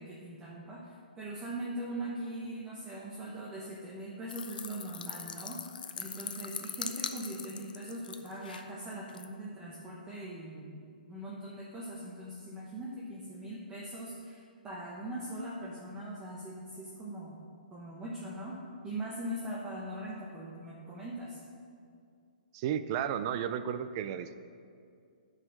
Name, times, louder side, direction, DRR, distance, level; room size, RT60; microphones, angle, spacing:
voice 1, 0.0-5.6 5.9-10.8 11.1-17.4 17.7-18.6 18.8-21.4, right 1 dB, 10° right, -6 dB, 1.0 m, -41 dB
sound 1, 4.3-8.6 9.1-9.2, left 7 dB, 65° left, 0.6 m, -41 dB
voice 2, 22.5-24.4, right 9 dB, 30° right, 12 dB, 0.4 m, -33 dB
9.6 x 5.0 x 6.4 m, 2.3 s
hypercardioid pair, 155°, 5 cm